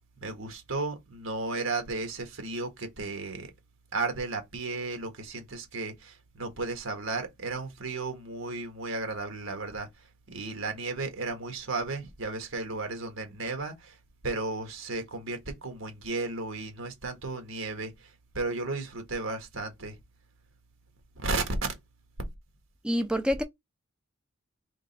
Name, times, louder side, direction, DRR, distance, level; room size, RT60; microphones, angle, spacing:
voice 1, 0.2-3.5 3.9-9.9 10.3-14.0 14.2-20.0 21.2-21.7, right 3 dB, 85° right, 1.5 m, -34 dB
voice 2, 22.8-23.4, equal, 5° right, 0.4 m, -26 dB
3.8 x 3.2 x 4.0 m
head